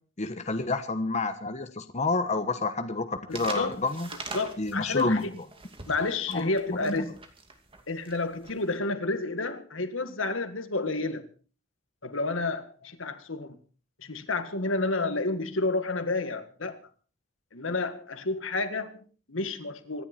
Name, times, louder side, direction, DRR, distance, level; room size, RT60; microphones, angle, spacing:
voice 1, 0.2-4.1 4.6-5.3 6.3-7.0, left 3 dB, 35° left, 1.3 m, -29 dB
voice 2, 3.3-3.8 4.3-5.2 5.9-7.1 7.9-11.3 12.0-13.6 14.0-16.8 17.5-20.0, left 3 dB, 75° left, 1.8 m, -30 dB
sound 1, 3.3-8.7, right 3 dB, 30° right, 2.4 m, -42 dB
25.0 x 11.0 x 4.4 m
head